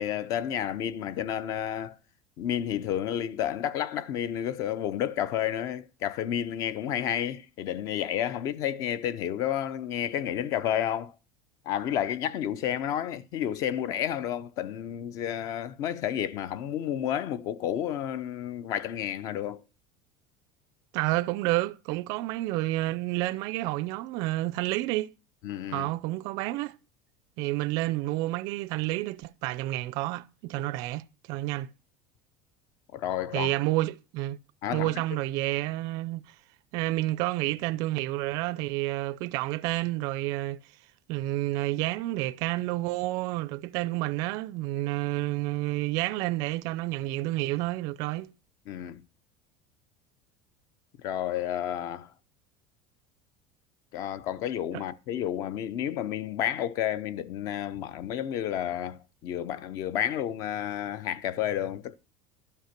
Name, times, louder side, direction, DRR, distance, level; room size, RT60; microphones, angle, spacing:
voice 1, 0.0-2.0 2.4-11.1 11.6-19.6 25.4-25.9 32.9-33.5 34.6-34.9 48.7-49.0 51.0-52.1 53.9-62.0, left 10 dB, 40° left, 0.6 m, -31 dB
voice 2, 20.9-25.1 25.7-26.7 27.4-31.7 33.3-34.4 34.7-36.4 36.7-40.6 41.1-48.3 54.7-54.8, right 18 dB, 45° right, 0.4 m, -30 dB
12.0 x 5.6 x 5.8 m
cardioid pair, 180°, 9 cm